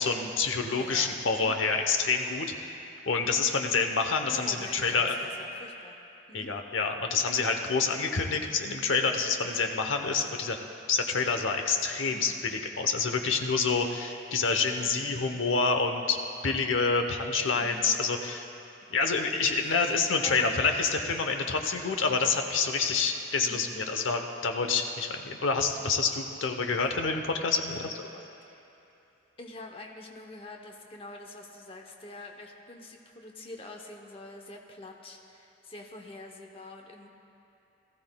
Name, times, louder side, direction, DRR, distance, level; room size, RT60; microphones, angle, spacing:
voice 1, 0.0-2.7 3.1-5.1 6.3-10.6 10.9-16.2 16.4-18.4 18.9-27.9, left 4 dB, 80° left, 5 dB, 0.9 m, -27 dB
voice 2, 0.7-1.6 4.3-6.0 6.3-6.5 12.1-12.4 14.8-15.4 17.5-17.9 19.6-19.8 20.2-20.7 23.4-23.8 26.8-26.9 27.7-27.9 28.5-28.6 29.4-37.1, left 2 dB, 30° left, 2 dB, 0.8 m, -46 dB
19.5 x 14.0 x 2.3 m, 2.8 s
head